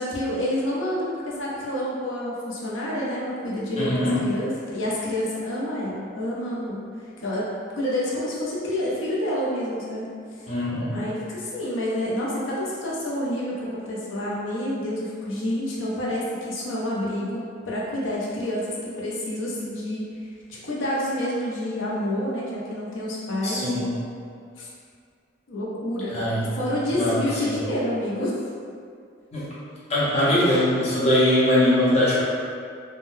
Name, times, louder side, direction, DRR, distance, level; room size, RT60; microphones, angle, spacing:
voice 1, 0.0-10.1 10.4-10.5 10.9-20.1 20.5-23.9 24.6-24.7 25.5-28.3, left 1 dB, 90° left, -6 dB, 0.6 m, -28 dB
voice 2, 3.8-4.2 10.5-11.0 23.4-23.9 26.1-26.5 26.9-27.6 29.3-29.5 29.9-32.2, left 1 dB, 35° left, -10 dB, 0.7 m, -22 dB
3.6 x 2.1 x 2.6 m, 2.3 s
head